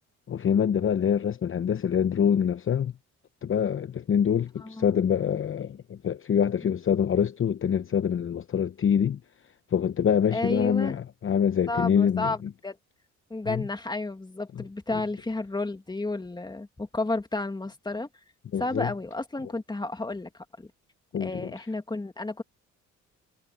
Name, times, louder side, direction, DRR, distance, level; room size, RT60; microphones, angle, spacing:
voice 1, 0.3-2.9 3.4-9.2 9.7-12.5 13.5-13.6 14.6-14.7 18.5-18.9 21.1-21.5, left 8 dB, 45° left, 0.9 m, -25 dB
voice 2, 4.6-5.0 10.3-11.0 11.7-12.4 12.6-12.8 13.3-18.1 18.6-20.3 20.6-20.7 21.2-22.4, left 2 dB, 15° left, 2.3 m, -31 dB
cardioid pair, 90°, 30 cm